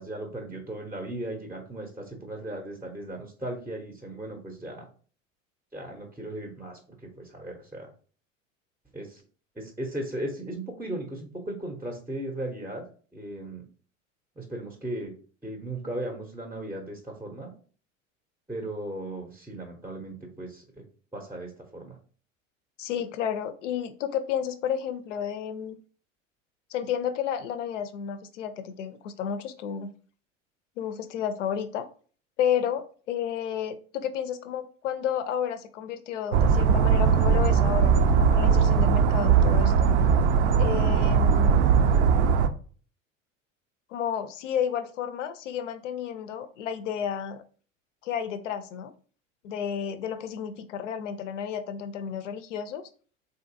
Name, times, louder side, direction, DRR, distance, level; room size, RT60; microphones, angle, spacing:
voice 1, 0.0-4.9 5.7-6.8 7.2-7.9 8.9-9.2 9.6-12.8 13.1-13.6 14.4-15.1 15.4-17.5 18.5-20.8 21.1-22.0, right 1 dB, 5° right, 2 dB, 0.6 m, -36 dB
voice 2, 22.8-25.8 26.7-29.9 30.8-31.9 32.4-39.9 40.6-41.8 43.9-47.4 48.0-48.9 49.4-52.8, left 8 dB, 70° left, 11 dB, 0.5 m, -31 dB
sound 1, 36.3-42.5, right 6 dB, 60° right, 0.5 m, -20 dB
3.7 x 2.6 x 2.5 m, 0.41 s
figure-of-eight pair, 70°, 39 cm